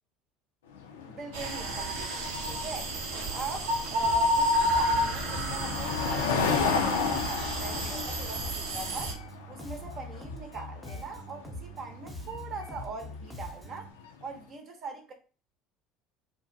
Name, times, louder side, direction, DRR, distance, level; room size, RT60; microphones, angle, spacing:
sound 1, 0.7-14.2, left 5 dB, 90° left, 0.4 m, -35 dB
voice 1, 1.0-3.0 3.3-9.2 9.5-13.9 14.2-15.1, right 3 dB, 45° right, 0.7 m, -41 dB
sound 2, 1.3-9.1, equal, 80° right, 0.7 m, -30 dB
Bass guitar, 4.0-13.9, left 1 dB, 5° right, 0.7 m, -43 dB
2.6 x 2.1 x 2.6 m
hypercardioid pair, 80°, 0 cm